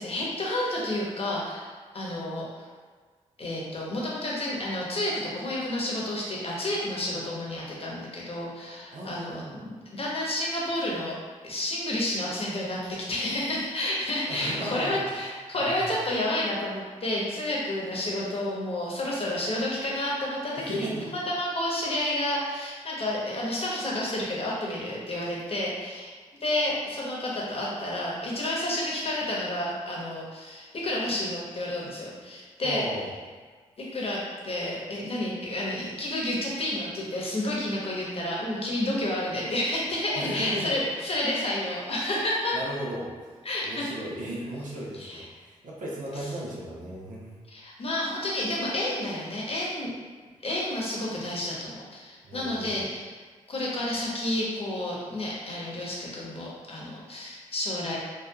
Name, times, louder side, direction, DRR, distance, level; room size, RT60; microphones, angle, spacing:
voice 1, 0.0-2.6 3.4-11.2 11.4-26.1 26.4-32.8 33.8-42.6 43.4-43.9 44.9-45.3 47.5-49.9 50.4-53.1 53.5-58.0, left 1 dB, 45° left, -4 dB, 0.9 m, -30 dB
voice 2, 8.9-9.6 14.3-15.0 15.6-15.9 20.6-21.1 32.6-33.1 40.1-40.7 42.5-43.1 43.6-47.3 52.2-52.9, right 1 dB, 70° right, -4 dB, 0.7 m, -35 dB
2.7 x 2.3 x 2.2 m, 1.5 s
supercardioid pair, 40°, 14 cm